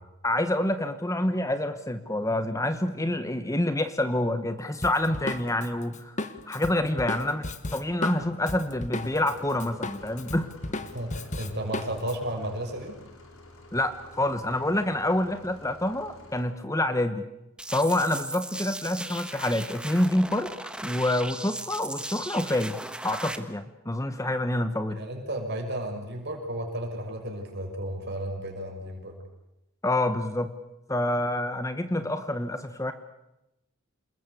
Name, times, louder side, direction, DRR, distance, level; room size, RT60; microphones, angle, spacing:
voice 1, 0.2-6.2 6.5-10.5 13.7-17.3 17.7-20.5 20.8-25.0 29.8-30.5 30.9-32.9, left 1 dB, 15° left, 10 dB, 1.1 m, -27 dB
Drum kit, 4.8-9.3 9.6-12.1, left 2 dB, 35° left, 1.5 m, -34 dB
sound 1, 8.9-16.4, left 1 dB, 70° left, 4.9 m, -50 dB
voice 2, 10.9-13.0 24.9-29.1, right 1 dB, 50° right, 2 dB, 6.4 m, -33 dB
sound 2, 17.6-23.4, right 1 dB, 5° right, 1.3 m, -37 dB
27.5 x 21.0 x 8.5 m, 0.92 s
head